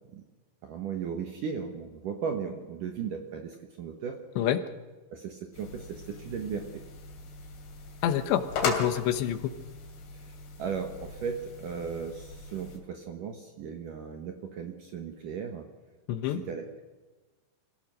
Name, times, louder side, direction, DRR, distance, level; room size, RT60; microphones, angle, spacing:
voice 1, 0.6-4.2 5.1-6.8 10.1-15.7 16.2-16.8, right 6 dB, 65° right, 4 dB, 2.2 m, -36 dB
sound 1, 5.5-12.8, left 4 dB, 55° left, 4.3 m, -38 dB
voice 2, 8.0-9.5 16.1-16.4, left 11 dB, 75° left, 10 dB, 3.1 m, -27 dB
26.5 x 16.0 x 6.3 m, 1.2 s
omnidirectional pair, 5.4 m